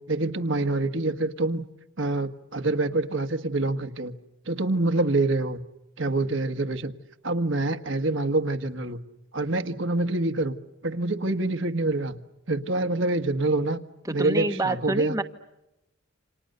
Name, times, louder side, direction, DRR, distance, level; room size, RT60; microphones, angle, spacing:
voice 1, 0.1-1.6 2.0-4.1 4.5-5.6 6.0-6.9 7.2-9.0 9.3-10.5 10.8-12.2 12.5-13.8 14.1-15.1, right 2 dB, 65° right, 8 dB, 1.6 m, -26 dB
voice 2, 14.1-15.2, right 2 dB, 15° right, 5 dB, 1.3 m, -27 dB
29.0 x 27.5 x 6.7 m, 0.93 s
head